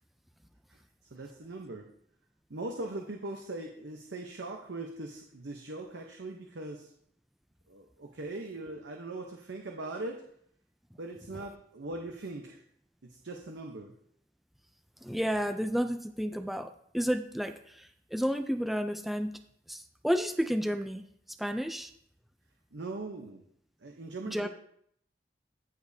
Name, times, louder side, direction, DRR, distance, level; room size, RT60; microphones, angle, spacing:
voice 1, 1.1-1.9 2.5-6.9 7.7-10.2 11.0-12.6 13.0-13.9 22.7-23.4 23.8-24.5, right 2 dB, 85° right, 2 dB, 0.8 m, -40 dB
voice 2, 15.0-19.3 19.7-21.0 21.4-21.9 24.3-24.5, equal, ahead, 8 dB, 0.4 m, -31 dB
14.5 x 5.1 x 2.7 m, 0.68 s
head